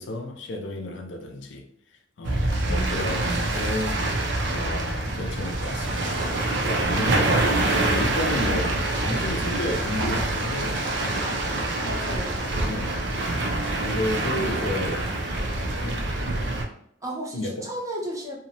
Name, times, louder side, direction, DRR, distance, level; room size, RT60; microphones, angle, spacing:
voice 1, 0.0-1.7 2.2-4.0 4.5-6.2 6.5-7.3 7.8-11.3 11.5-11.8 12.7-13.0 13.3-13.4 13.8-15.0 15.8-16.0 17.3-17.7, left 1 dB, 70° left, 0.5 m, -32 dB
sound 1, 2.2-16.6, right 2 dB, 65° right, 0.5 m, -26 dB
voice 2, 2.6-3.3 7.0-7.3 7.8-8.0 11.8-13.1 17.0-18.4, right 1 dB, 15° right, 0.5 m, -35 dB
2.6 x 2.0 x 2.6 m
head